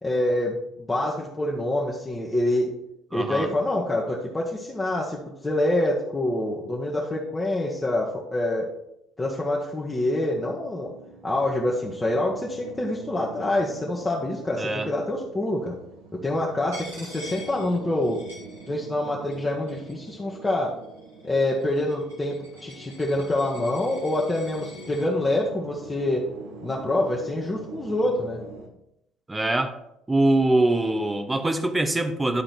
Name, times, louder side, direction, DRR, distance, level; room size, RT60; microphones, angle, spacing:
voice 1, 0.0-2.7 3.1-8.7 9.2-10.9 11.2-15.7 16.2-18.2 18.7-20.7 21.2-26.3 26.6-28.4, left 1 dB, 20° left, -3 dB, 1.3 m, -26 dB
voice 2, 3.1-3.5 14.6-14.9 29.3-29.7 30.1-32.4, right 2 dB, 15° right, 8 dB, 0.9 m, -23 dB
sound 1, 9.6-28.7, right 3 dB, 65° right, 1.1 m, -45 dB
Coin (dropping), 16.7-19.0 19.3-20.1 20.8-25.1, left 1 dB, 85° right, 2.4 m, -46 dB
11.0 x 3.8 x 4.4 m, 0.81 s
hypercardioid pair, 55°, 0 cm